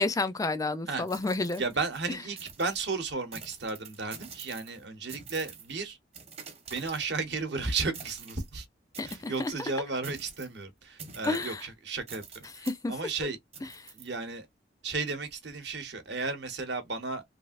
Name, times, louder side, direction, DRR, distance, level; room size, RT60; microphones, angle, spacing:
voice 1, 0.0-1.6 9.0-9.5 11.2-11.6 12.6-12.9, left 3 dB, 20° left, 0.4 m, -30 dB
sound 1, 1.0-2.0 2.4-2.9 3.3-4.8 5.1-5.7 6.1-7.4 7.9-8.5 8.9-9.6 10.0-10.6 11.0-11.6 12.1-12.8 13.5-14.1, right 5 dB, 35° right, 0.9 m, -47 dB
voice 2, 1.6-6.0 6.7-8.7 9.0-13.4 13.9-14.5 14.8-17.2, right 4 dB, 65° right, 1.0 m, -34 dB
3.3 x 2.5 x 2.4 m
head